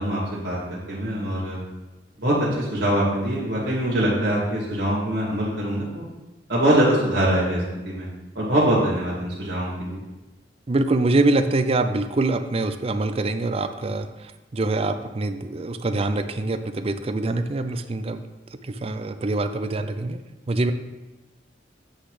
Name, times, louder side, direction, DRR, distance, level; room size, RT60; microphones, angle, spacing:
voice 1, 0.0-1.6 2.2-6.1 6.5-8.1 8.3-10.0, right 1 dB, 80° right, -6 dB, 2.4 m, -23 dB
voice 2, 10.7-14.1 14.5-18.2 18.8-20.2 20.5-20.7, right 2 dB, 35° right, 9 dB, 0.4 m, -24 dB
8.4 x 4.0 x 4.9 m, 1.1 s
head